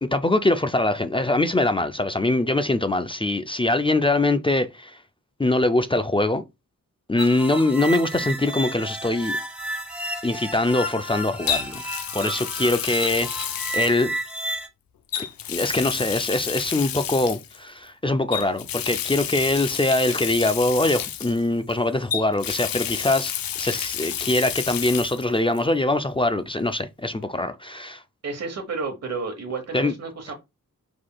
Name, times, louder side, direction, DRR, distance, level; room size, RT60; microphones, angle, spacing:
voice 1, 0.0-5.0 5.4-6.4 7.1-9.3 10.2-11.8 12.1-14.1 15.5-23.3 23.6-28.0 29.7-29.9, left 2 dB, 15° left, 0.3 m, -23 dB
sound 1, 7.2-14.7, right 1 dB, 5° right, 0.8 m, -32 dB
Water tap faucet, 8.5-8.7 11.5-14.5 15.1-17.6 18.3-21.7 22.1-25.2 25.5-25.6 27.2-27.3, left 10 dB, 85° left, 0.5 m, -30 dB
voice 2, 28.2-30.3, right 4 dB, 50° right, 1.1 m, -31 dB
4.9 x 3.9 x 2.2 m
wide cardioid pair, 110°, 34 cm